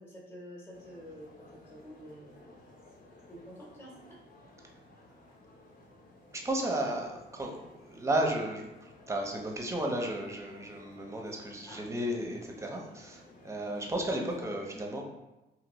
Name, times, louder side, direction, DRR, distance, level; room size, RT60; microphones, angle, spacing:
voice 1, 0.0-2.6 3.3-4.2 11.6-11.8, equal, 10° left, -3 dB, 0.9 m, -49 dB
sound 1, 0.7-14.4, left 1 dB, 45° left, 0.9 m, -56 dB
voice 2, 6.3-15.0, right 1 dB, 15° right, 1 dB, 0.6 m, -34 dB
2.8 x 2.5 x 3.0 m, 1.0 s
cardioid pair, 90°, 20 cm